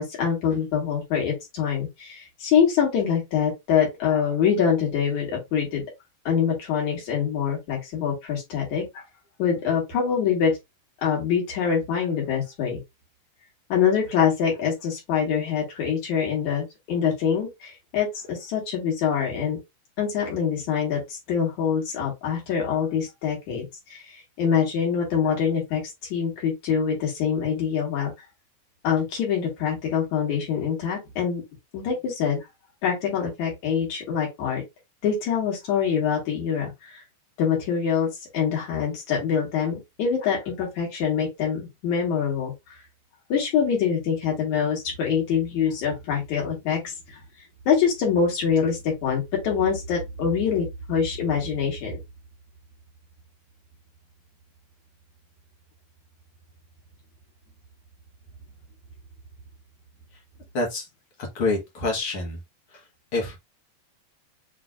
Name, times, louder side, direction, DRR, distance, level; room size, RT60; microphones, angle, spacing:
voice 1, 0.0-5.8 6.2-9.0 9.4-10.5 11.0-12.8 13.7-19.6 20.0-24.0 24.4-25.8 26.1-28.1 28.8-31.4 31.7-32.4 32.8-34.6 35.0-37.0 37.4-42.5 43.3-46.9 47.7-52.0, left 7 dB, 70° left, 3.4 m, -25 dB
voice 2, 60.5-60.9 61.2-62.4 63.1-63.4, left 3 dB, 50° left, 2.0 m, -26 dB
6.0 x 3.2 x 2.4 m
omnidirectional pair, 3.5 m